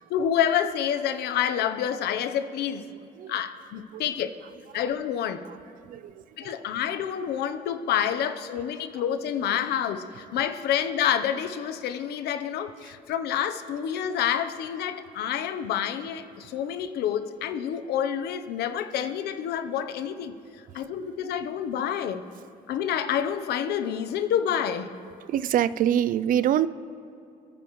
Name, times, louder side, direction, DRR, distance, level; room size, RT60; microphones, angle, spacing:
voice 1, 0.1-2.9 3.3-4.3 4.7-5.5 6.4-20.3 20.7-22.2 22.7-25.0, left 9 dB, 75° left, 9 dB, 0.9 m, -28 dB
voice 2, 25.3-26.7, right 10 dB, 55° right, 17 dB, 0.4 m, -24 dB
27.0 x 9.7 x 3.1 m, 2.7 s
cardioid pair, 110°, 17 cm